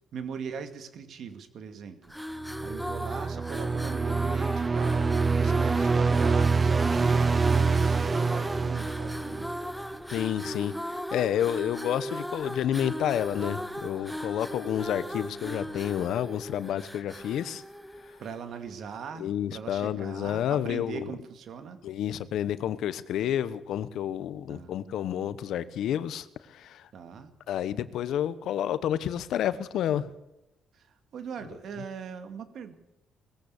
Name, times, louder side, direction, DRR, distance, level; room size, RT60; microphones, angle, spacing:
voice 1, 0.1-2.0 2.6-9.5 18.2-21.8 24.5-24.7 26.9-27.3 30.7-32.7, right 6 dB, 70° right, 2.2 m, -40 dB
sound 1, 2.0-18.5, equal, ahead, 0.9 m, -37 dB
sound 2, 2.5-9.8, right 4 dB, 30° right, 0.7 m, -26 dB
voice 2, 10.1-17.6 19.2-21.1 21.8-26.9 27.5-30.1, left 10 dB, 80° left, 1.1 m, -30 dB
20.0 x 15.5 x 8.5 m
cardioid pair, 90°, 0 cm